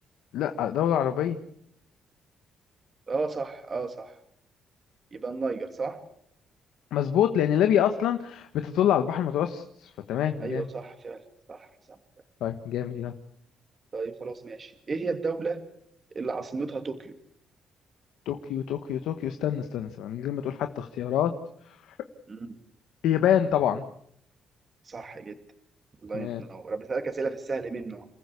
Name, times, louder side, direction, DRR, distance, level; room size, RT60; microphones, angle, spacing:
voice 1, 0.3-1.4 6.9-10.7 12.4-13.1 18.2-21.3 23.0-23.8 26.1-26.4, left 10 dB, 85° left, 8 dB, 1.3 m, -26 dB
voice 2, 3.1-4.1 5.1-6.0 10.4-11.2 11.5-11.7 13.9-15.6 16.1-17.2 22.3-22.6 24.9-25.3 26.0-28.1, right 4 dB, 35° right, 7 dB, 2.5 m, -33 dB
28.0 x 15.0 x 8.4 m, 0.70 s
cardioid pair, 90°, 0 cm